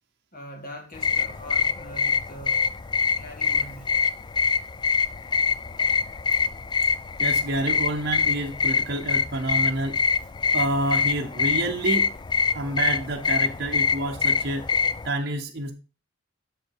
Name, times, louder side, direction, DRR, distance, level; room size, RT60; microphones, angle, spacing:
voice 1, 0.3-2.6 3.1-3.9, equal, 50° left, 2.1 m, -42 dB
sound 1, 0.9-15.1, left 5 dB, 25° left, 0.3 m, -25 dB
voice 2, 7.2-10.0 10.5-12.1 12.5-14.7 15.0-15.7, right 2 dB, 55° right, 0.8 m, -28 dB
6.5 x 5.1 x 4.7 m
head